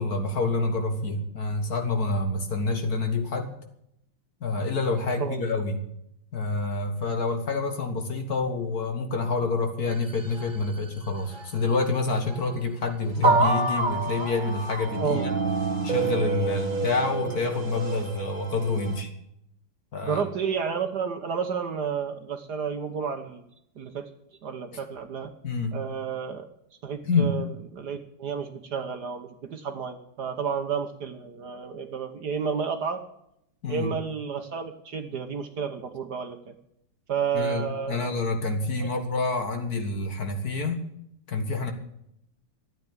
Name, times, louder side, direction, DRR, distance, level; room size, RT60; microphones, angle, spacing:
voice 1, 0.0-3.6 4.4-5.8 6.3-15.3 15.8-19.1 19.9-20.2 24.7-24.8 25.4-25.8 27.0-27.4 33.6-33.9 37.3-40.8 41.3-41.7, left 3 dB, 45° left, 6 dB, 2.0 m, -27 dB
sound 1, 9.9-10.9 11.3-11.5 12.3-12.4 13.2-19.0, right 3 dB, 25° right, 1.3 m, -28 dB
voice 2, 20.0-23.4 23.8-24.0 24.4-25.3 25.7-26.5 26.8-27.4 27.7-33.0 33.7-36.4 37.1-38.1 38.8-38.9, right 6 dB, 55° right, 7 dB, 1.4 m, -31 dB
13.0 x 9.4 x 8.7 m, 0.76 s
omnidirectional pair, 2.4 m